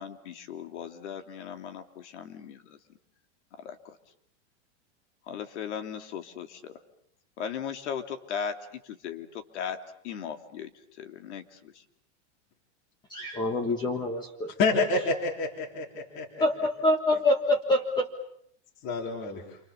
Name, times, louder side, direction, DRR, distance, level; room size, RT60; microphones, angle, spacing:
voice 1, 0.0-2.8 3.6-4.0 5.2-6.8 7.4-9.8 10.0-11.8, left 7 dB, 70° left, 6 dB, 3.1 m, -38 dB
voice 2, 13.1-14.5 16.4-18.1, left 1 dB, 10° left, 3 dB, 1.5 m, -26 dB
voice 3, 14.6-16.3 18.8-19.6, left 3 dB, 35° left, 0 dB, 3.9 m, -28 dB
29.0 x 25.0 x 7.0 m, 0.71 s
supercardioid pair, 165°, 35 cm